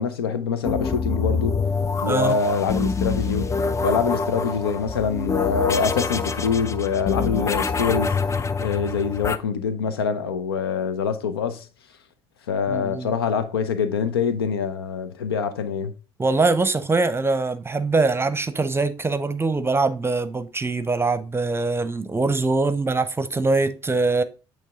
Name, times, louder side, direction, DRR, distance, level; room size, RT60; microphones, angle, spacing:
voice 1, 0.0-1.6 2.0-3.5 3.8-8.2 8.6-11.7 12.5-15.9, left 6 dB, 80° left, 0.5 m, -24 dB
sound 1, 0.6-9.4, left 4 dB, 25° left, 0.5 m, -26 dB
voice 2, 2.0-2.4 12.7-13.2 16.2-24.2, right 3 dB, 20° right, 0.7 m, -23 dB
8.4 x 3.2 x 3.6 m
figure-of-eight pair, 50°, 12 cm